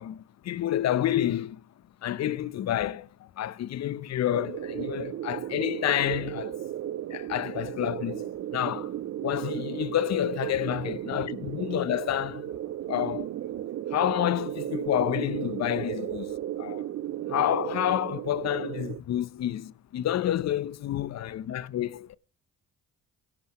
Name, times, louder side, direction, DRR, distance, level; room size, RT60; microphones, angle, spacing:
voice 1, 0.0-1.6 2.0-6.6 7.1-8.9 9.2-12.5 12.9-13.3 13.9-16.9 17.3-22.2, left 12 dB, 60° left, 0.7 m, -29 dB
sound 1, 4.3-19.0, right 12 dB, 50° right, 0.5 m, -35 dB
16.5 x 10.0 x 3.0 m
cardioid pair, 90°, 30 cm